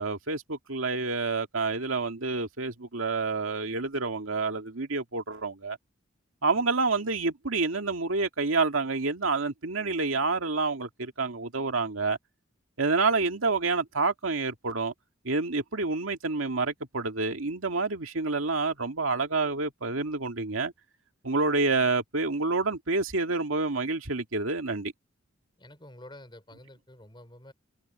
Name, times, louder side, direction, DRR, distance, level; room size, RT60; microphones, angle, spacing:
voice 1, 0.0-5.8 6.4-12.2 12.8-14.9 15.2-20.7 21.2-24.9, right 3 dB, 90° right, 2.2 m, -28 dB
voice 2, 25.6-27.5, left 1 dB, 25° left, 5.6 m, -49 dB
head